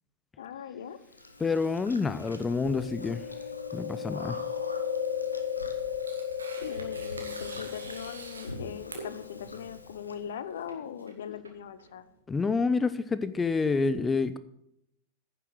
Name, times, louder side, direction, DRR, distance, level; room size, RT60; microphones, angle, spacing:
voice 1, 0.4-1.0 6.6-12.0, left 8 dB, 60° left, 14 dB, 0.7 m, -40 dB
Chewing mastication, 1.2-10.1, left 6 dB, 80° left, 1.0 m, -36 dB
voice 2, 1.4-3.2 3.7-4.4 12.3-14.4, left 4 dB, 15° left, 14 dB, 0.4 m, -28 dB
Tearing, 5.5-12.2, right 2 dB, 75° right, 1.6 m, -46 dB
10.0 x 7.0 x 6.3 m, 0.79 s
figure-of-eight pair, 90°, 0 cm